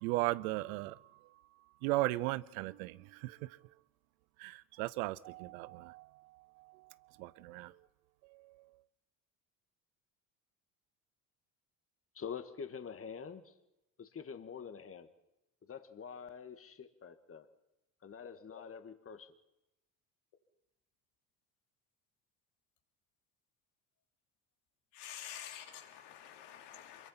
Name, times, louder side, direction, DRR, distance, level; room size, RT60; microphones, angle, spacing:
voice 1, 0.0-1.0 1.8-3.0 3.2-3.4 4.4-6.0 7.2-7.7, right 19 dB, 85° right, 0.7 m, -35 dB
voice 2, 12.1-13.5 14.0-15.1 15.7-17.5 18.0-19.3, left 7 dB, 35° left, 1.9 m, -46 dB
voice 3, 24.9-27.1, left 10 dB, 75° left, 3.4 m, -48 dB
24.5 x 22.5 x 5.8 m
supercardioid pair, 80°, 41 cm